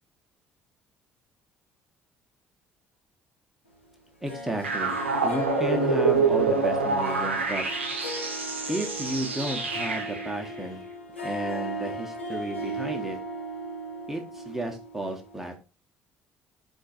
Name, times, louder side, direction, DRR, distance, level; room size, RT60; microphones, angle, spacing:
Harp, 4.2-15.4, right 1 dB, 85° left, 0.7 m, -37 dB
voice 1, 4.2-4.9 5.2-7.6 8.7-10.8 11.2-13.2 14.1-15.5, right 1 dB, 5° right, 3 dB, 1.2 m, -33 dB
sound 1, 4.6-10.3, right 4 dB, 80° right, 0.6 m, -26 dB
4.4 x 2.6 x 4.3 m, 0.33 s
figure-of-eight pair, 50°, 6 cm